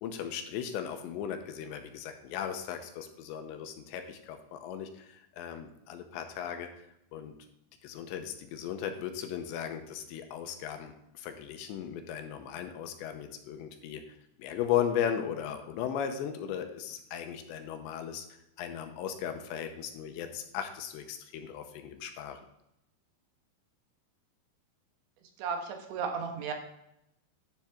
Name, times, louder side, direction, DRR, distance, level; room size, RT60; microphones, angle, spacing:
voice 1, 0.0-6.7 7.1-7.3 7.8-14.0 14.4-18.3 18.6-22.4, left 9 dB, 85° left, 6 dB, 3.0 m, -36 dB
voice 2, 25.4-26.5, right 5 dB, 80° right, 3 dB, 3.5 m, -34 dB
10.5 x 7.3 x 3.5 m, 0.82 s
omnidirectional pair, 5.3 m